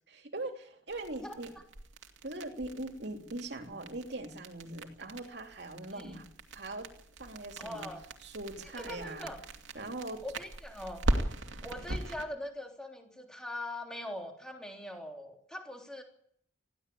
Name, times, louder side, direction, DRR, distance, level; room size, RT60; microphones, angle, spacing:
voice 1, 0.1-1.5 2.2-6.2 6.5-6.9 7.2-7.9 8.2-9.3 9.7-10.2, right 2 dB, 60° right, 4 dB, 3.1 m, -41 dB
sound 1, 0.9-12.2, right 1 dB, 85° right, 2.5 m, -39 dB
voice 2, 5.9-6.3 7.6-8.0 8.6-9.4 10.2-11.1 11.6-16.0, left 1 dB, 5° left, 2 dB, 3.4 m, -42 dB
20.5 x 15.5 x 8.5 m, 0.68 s
head